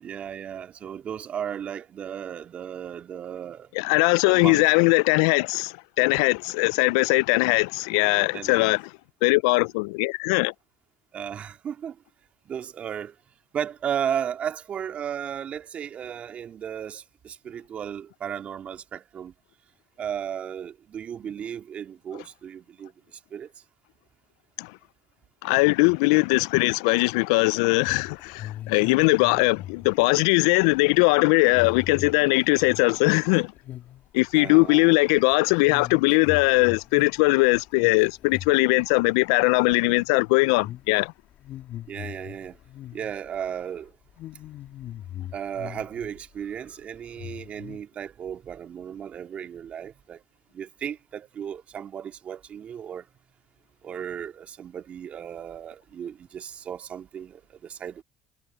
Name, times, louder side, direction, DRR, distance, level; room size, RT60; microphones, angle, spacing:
voice 1, 0.0-3.7 4.3-4.6 8.3-8.7 11.1-12.0 12.5-13.2 13.5-19.3 20.0-23.5 34.4-34.9 41.9-42.6 42.9-43.9 45.3-50.2 50.5-53.1 53.8-58.0, right 8 dB, 50° right, 2.2 m, -35 dB
voice 2, 3.8-8.8 9.2-10.5 24.6-24.7 25.4-33.5 34.1-41.1, left 27 dB, 75° left, 0.5 m, -20 dB
sound 1, 27.8-33.3 33.6-34.0 34.3-39.2 39.5-40.0 40.5-40.9 41.3-43.3 43.6-43.8 44.2-46.2 46.5-46.6 47.1-47.8, left 12 dB, 60° left, 2.8 m, -40 dB
hypercardioid pair, 65°, 3 cm